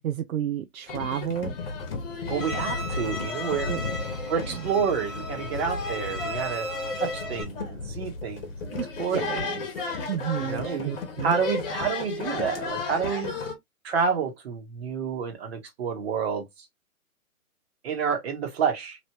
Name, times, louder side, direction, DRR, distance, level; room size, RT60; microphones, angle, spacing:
voice 1, 0.0-1.5 3.7-3.8 8.7-8.9 9.1-9.5 10.1-11.3, right 10 dB, 70° right, 0.6 m, -31 dB
sound 1, 0.9-13.5, left 3 dB, 40° left, 1.1 m, -33 dB
voice 2, 2.3-3.7 4.3-6.7 7.0-9.6 10.4-10.9 11.2-13.3 13.8-16.5 17.8-19.0, right 6 dB, 45° right, 1.3 m, -29 dB
Bowed string instrument, 2.4-7.4, left 1 dB, 10° left, 0.8 m, -37 dB
3.1 x 2.6 x 2.8 m
hypercardioid pair, 145°, 44 cm